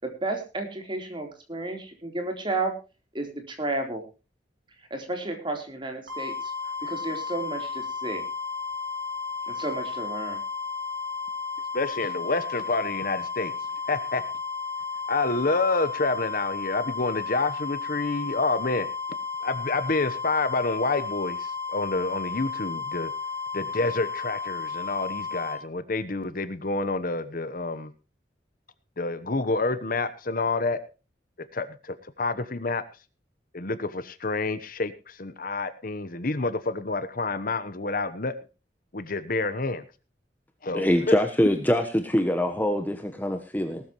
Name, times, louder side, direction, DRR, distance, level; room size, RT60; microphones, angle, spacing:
voice 1, 0.0-2.8 3.1-4.0 4.9-6.5 6.8-8.3 9.5-10.4, right 2 dB, 30° right, 4 dB, 3.8 m, -32 dB
sound 1, 6.1-25.6, left 5 dB, 85° right, 7.4 m, -33 dB
voice 2, 11.7-13.5 13.9-14.2 15.1-18.9 19.4-23.1 23.5-27.9 29.0-30.8 31.5-32.8 33.5-38.3 38.9-39.8 40.6-40.9, left 3 dB, 50° left, 13 dB, 1.1 m, -28 dB
voice 3, 40.7-43.8, equal, 10° left, 6 dB, 1.2 m, -24 dB
19.0 x 13.0 x 3.1 m, 0.31 s
head